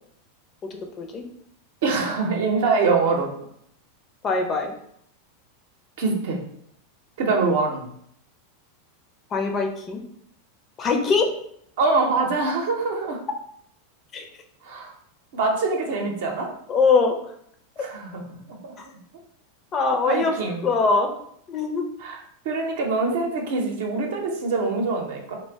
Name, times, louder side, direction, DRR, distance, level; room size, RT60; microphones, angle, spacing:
voice 1, 0.7-1.2 4.2-4.7 9.3-10.0 10.8-11.3 14.1-14.3 16.7-17.2 17.8-17.9 19.7-20.3 20.6-21.1 21.5-21.9, left 4 dB, 35° left, 4 dB, 0.5 m, -22 dB
voice 2, 1.8-3.3 6.0-6.4 7.2-7.8 11.8-13.2 14.7-14.9 15.3-16.5 17.8-18.2 18.6-18.7 20.1-20.6 22.0-22.2 22.4-25.4, right 4 dB, 70° right, 1 dB, 0.7 m, -24 dB
2.5 x 2.2 x 3.4 m, 0.69 s
hypercardioid pair, 100°, 0 cm